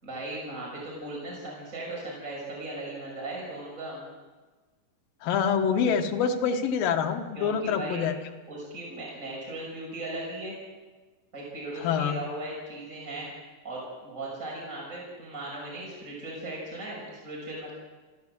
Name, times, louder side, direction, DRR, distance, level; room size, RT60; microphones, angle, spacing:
voice 1, 0.0-4.0 7.3-8.1 8.5-10.5 11.3-13.3 13.6-17.7, right 2 dB, 20° right, -4 dB, 6.2 m, -37 dB
voice 2, 5.2-8.2 11.8-12.2, left 7 dB, 85° left, 5 dB, 3.2 m, -26 dB
30.0 x 12.0 x 7.6 m, 1.3 s
omnidirectional pair, 3.9 m